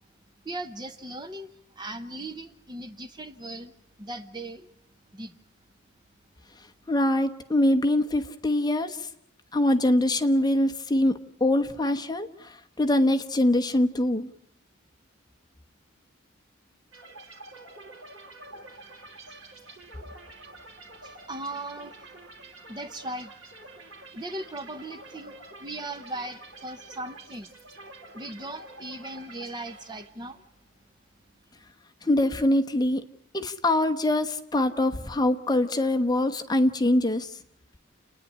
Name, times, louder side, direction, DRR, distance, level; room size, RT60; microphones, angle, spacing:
voice 1, 0.4-3.7 4.0-4.7 5.1-5.4 21.0-22.0 22.7-23.3 24.1-27.5 28.1-30.4, right 1 dB, 20° right, 10 dB, 0.8 m, -38 dB
voice 2, 6.9-9.1 9.5-14.3 32.0-33.0 33.3-37.3, left 1 dB, 20° left, 5 dB, 1.1 m, -24 dB
sound 1, 16.9-30.5, right 2 dB, 80° right, 3.5 m, -48 dB
30.0 x 10.0 x 9.8 m, 0.77 s
head